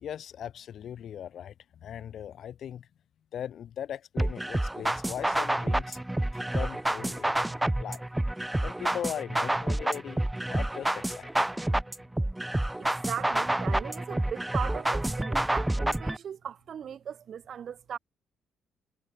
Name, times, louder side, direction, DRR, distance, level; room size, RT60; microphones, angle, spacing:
voice 1, 0.0-1.5 1.8-2.9 3.3-6.0 6.3-7.5 7.8-8.0 8.6-10.2 10.5-11.3, left 9 dB, 65° left, 0.4 m, -39 dB
sound 1, 4.2-16.2, right 1 dB, 10° right, 0.5 m, -29 dB
voice 2, 12.8-18.0, right 8 dB, 60° right, 1.1 m, -38 dB
cardioid pair, 90°, 0 cm